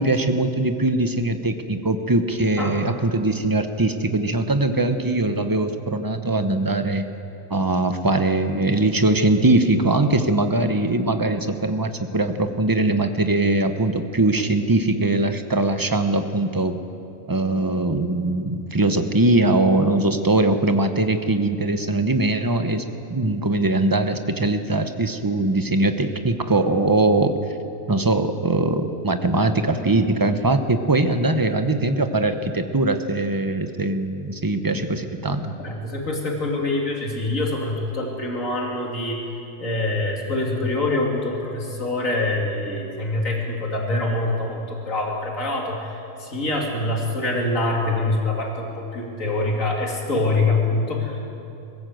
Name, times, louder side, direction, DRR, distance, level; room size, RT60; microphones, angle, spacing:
voice 1, 0.0-7.1 7.5-16.8 17.3-22.8 23.1-27.4 27.9-35.6, right 2 dB, 20° right, 8 dB, 0.8 m, -21 dB
voice 2, 35.6-39.2 39.6-51.2, left 2 dB, 85° left, -1 dB, 3.0 m, -25 dB
22.0 x 15.0 x 7.8 m, 2.8 s
omnidirectional pair, 1.3 m